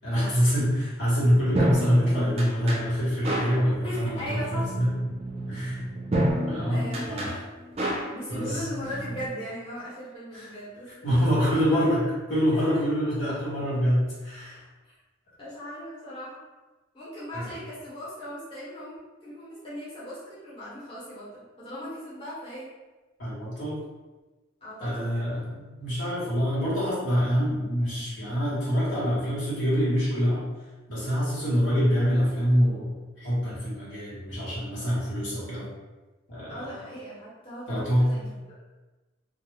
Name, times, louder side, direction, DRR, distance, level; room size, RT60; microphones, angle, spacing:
voice 1, 0.0-4.9 5.5-5.8 6.5-7.4 8.3-8.7 10.3-10.5 10.9-14.6 17.3-17.5 23.2-23.8 24.8-30.4 30.9-35.7 36.3-36.8 37.7-38.1, equal, 85° left, -9 dB, 1.3 m, -25 dB
sound 1, 1.2-9.3, right 1 dB, 30° right, 0.4 m, -30 dB
voice 2, 3.8-4.7 6.7-7.3 8.1-11.8 12.5-12.6 14.8-14.9 15.4-16.4 16.9-22.7 24.6-25.4 36.5-38.4, equal, 30° left, -10 dB, 0.9 m, -38 dB
2.3 x 2.3 x 3.2 m, 1.2 s
head